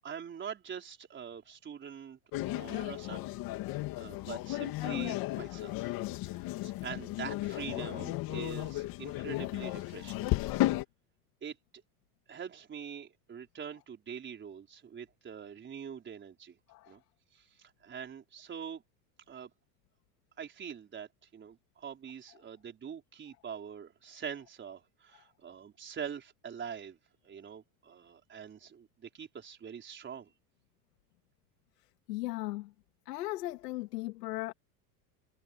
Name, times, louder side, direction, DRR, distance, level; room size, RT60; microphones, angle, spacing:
voice 1, 0.0-3.3 4.0-6.0 6.2-10.3 11.4-11.6 12.3-16.6 16.9-17.0 17.3-18.8 19.3-19.5 20.4-27.0 27.2-30.3, right 7 dB, 25° right, 4.4 m, -44 dB
sound 1, 2.3-10.8, left 17 dB, 50° left, 2.5 m, -34 dB
voice 2, 32.1-32.7 33.1-34.5, left 18 dB, 90° left, 2.2 m, -37 dB
supercardioid pair, 135°, 46 cm